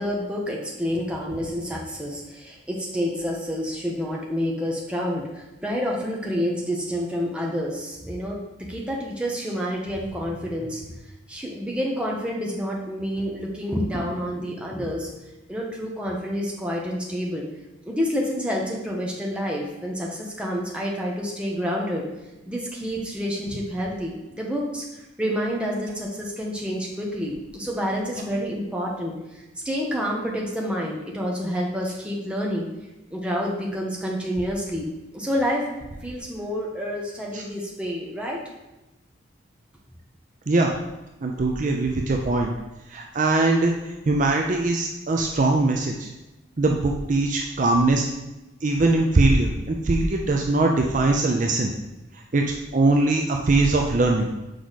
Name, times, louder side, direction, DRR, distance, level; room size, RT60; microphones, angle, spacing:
voice 1, 0.0-10.9 11.3-15.1 15.5-17.5 17.8-22.0 22.5-29.2 29.6-32.7 33.1-35.7 36.0-38.4, equal, 5° right, -2 dB, 0.9 m, -28 dB
voice 2, 41.2-42.5 42.9-43.7 44.1-46.1 46.6-48.1 48.6-51.7 52.3-54.3, right 2 dB, 40° right, 1 dB, 0.5 m, -21 dB
6.3 x 4.7 x 4.0 m, 1.0 s
head